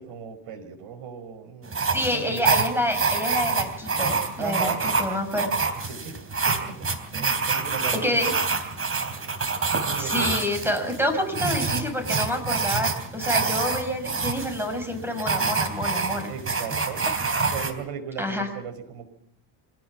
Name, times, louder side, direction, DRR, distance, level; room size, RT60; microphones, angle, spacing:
voice 1, 0.0-2.4 4.4-4.8 5.2-5.3 5.9-6.2 6.5-6.8 7.1-8.4 9.8-10.3 16.3-17.0 17.5-19.1, right 7 dB, 80° right, 8 dB, 5.3 m, -36 dB
sound 1, 1.7-17.7, right 4 dB, 25° right, 3.4 m, -27 dB
voice 2, 1.8-5.5 8.0-8.3 10.0-16.3 17.1-17.2 18.2-18.5, left 1 dB, 5° right, 6 dB, 5.7 m, -28 dB
26.5 x 17.5 x 6.0 m, 0.66 s
cardioid pair, 140°, 49 cm